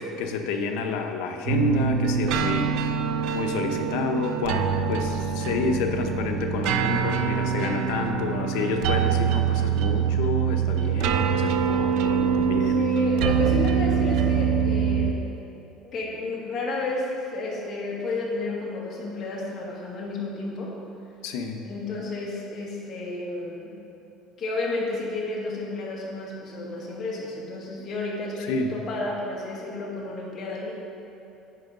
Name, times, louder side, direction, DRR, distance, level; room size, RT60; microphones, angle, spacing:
voice 1, 0.0-2.9 3.3-12.8 21.2-21.6 28.5-28.7, left 3 dB, 80° left, 5 dB, 0.7 m, -29 dB
sound 1, 1.5-15.1, right 7 dB, 65° right, 0.4 m, -24 dB
voice 2, 12.5-15.2 15.8-20.8 21.6-23.7 24.4-30.7, left 2 dB, 35° left, -3 dB, 1.5 m, -31 dB
10.5 x 3.8 x 5.3 m, 2.8 s
cardioid pair, 170°, 0 cm